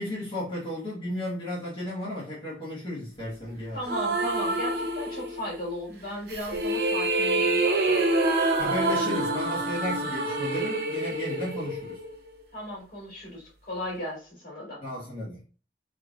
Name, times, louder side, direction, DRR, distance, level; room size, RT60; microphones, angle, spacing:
voice 1, 0.0-3.8 8.6-12.0 14.8-15.4, left 1 dB, 30° left, 1.2 m, -34 dB
voice 2, 3.7-8.0 12.5-14.8, left 1 dB, 55° left, 1.9 m, -36 dB
sound 1, 3.9-5.6 6.3-12.4, right 2 dB, 65° right, 0.7 m, -27 dB
3.6 x 3.1 x 2.4 m
head